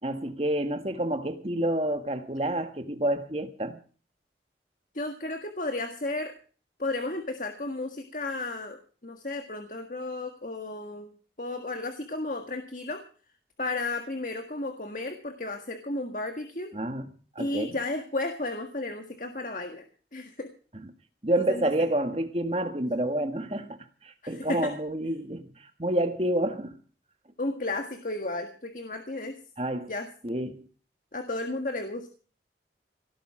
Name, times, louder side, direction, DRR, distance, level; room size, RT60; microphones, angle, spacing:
voice 1, 0.0-3.8 16.7-17.1 17.3-17.8 20.7-20.9 21.2-26.7 29.6-29.9 30.2-30.7, right 1 dB, 35° right, 1.5 m, -29 dB
voice 2, 4.9-6.3 6.8-11.1 11.4-13.0 13.6-16.7 17.4-19.9 20.1-20.5 21.5-21.9 24.2-24.7 27.4-29.4 29.9-30.1 31.1-32.1, left 2 dB, 45° left, 1.7 m, -33 dB
18.0 x 12.0 x 4.9 m
head